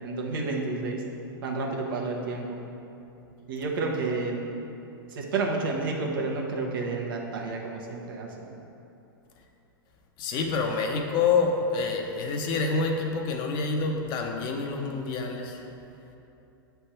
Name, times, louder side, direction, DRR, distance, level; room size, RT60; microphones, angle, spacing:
voice 1, 0.0-1.0 1.4-2.6 3.5-4.5 5.1-8.3, right 3 dB, 70° right, 0 dB, 1.0 m, -30 dB
voice 2, 10.2-15.6, left 4 dB, 40° left, 2 dB, 0.7 m, -27 dB
7.7 x 3.4 x 4.3 m, 2.9 s
hypercardioid pair, 115°, 12 cm